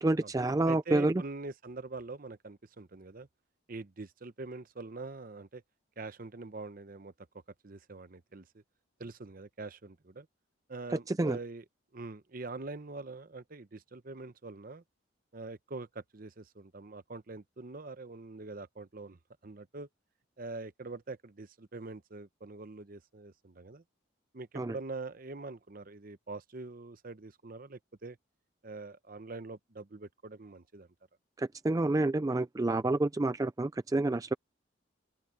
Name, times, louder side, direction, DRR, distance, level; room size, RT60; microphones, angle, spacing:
voice 1, 0.0-1.2 10.9-11.4 24.6-24.7 31.4-34.3, right 2 dB, 15° right, 0.3 m, -28 dB
voice 2, 0.7-3.3 3.7-5.6 6.0-7.1 7.6-8.4 9.0-10.3 10.7-11.6 11.9-14.8 15.3-19.9 20.4-23.8 24.3-28.2 28.6-30.9, right 3 dB, 45° right, 0.8 m, -44 dB
open air
head